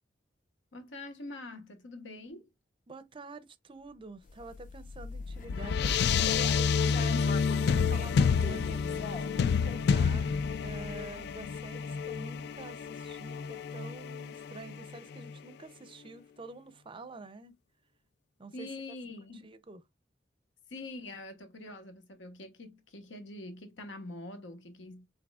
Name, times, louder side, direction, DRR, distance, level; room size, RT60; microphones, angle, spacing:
voice 1, 0.7-2.5 18.5-19.5 20.7-25.1, left 2 dB, 85° left, 1.2 m, -44 dB
voice 2, 2.9-10.3 10.6-17.5 18.4-18.7 19.4-19.8, right 3 dB, 30° right, 0.5 m, -48 dB
sound 1, 4.2-5.4 5.8-9.5, left 3 dB, 45° left, 0.7 m, -43 dB
sound 2, 4.6-15.3, left 6 dB, 60° left, 0.3 m, -29 dB
6.0 x 3.8 x 2.3 m
head